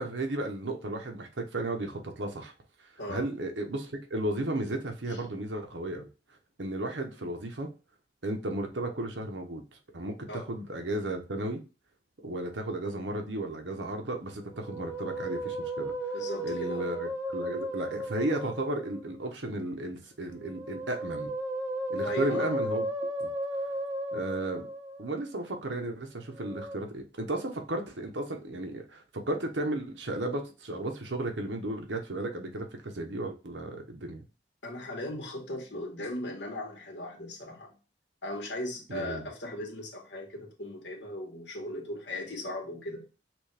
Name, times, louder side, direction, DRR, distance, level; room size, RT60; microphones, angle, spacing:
voice 1, 0.0-2.5 3.1-6.1 6.6-7.7 8.2-9.6 9.9-11.6 12.2-15.9 16.4-21.3 21.9-22.9 23.2-23.3 24.1-24.6 25.0-34.2 38.9-39.3, right 1 dB, 85° right, 4 dB, 1.0 m, -34 dB
Musical instrument, 14.5-19.1 20.4-25.2 26.4-26.8, right 1 dB, 15° right, 0.6 m, -35 dB
voice 2, 16.1-16.9 22.0-22.5 34.6-37.8 38.2-43.1, left 1 dB, 75° left, 0 dB, 1.7 m, -38 dB
6.1 x 2.6 x 3.4 m, 0.32 s
head